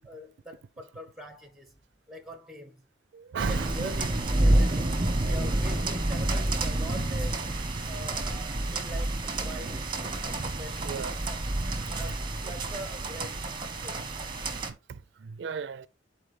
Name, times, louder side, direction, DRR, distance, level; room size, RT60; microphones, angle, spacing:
voice 1, 0.0-1.7 2.1-2.8 3.4-4.1 4.4-7.5 7.8-9.8 10.4-11.4 12.0-13.5 13.8-14.1, equal, ahead, 1.4 m, -43 dB
voice 2, 3.1-4.0 10.8-11.2 12.4-12.5 14.9-15.9, right 6 dB, 85° right, 0.4 m, -35 dB
sound 1, 3.4-14.7, right 1 dB, 25° right, 1.1 m, -29 dB
8.9 x 4.3 x 3.3 m
head